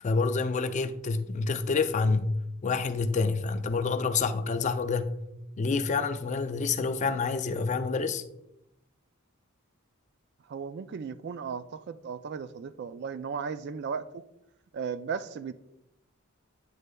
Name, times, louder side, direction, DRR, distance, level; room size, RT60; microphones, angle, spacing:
voice 1, 0.0-2.3 2.6-5.1 5.6-8.2, left 4 dB, 35° left, 0.4 m, -28 dB
voice 2, 10.5-14.2 14.7-15.5, right 6 dB, 50° right, 0.3 m, -36 dB
8.4 x 6.5 x 2.2 m
head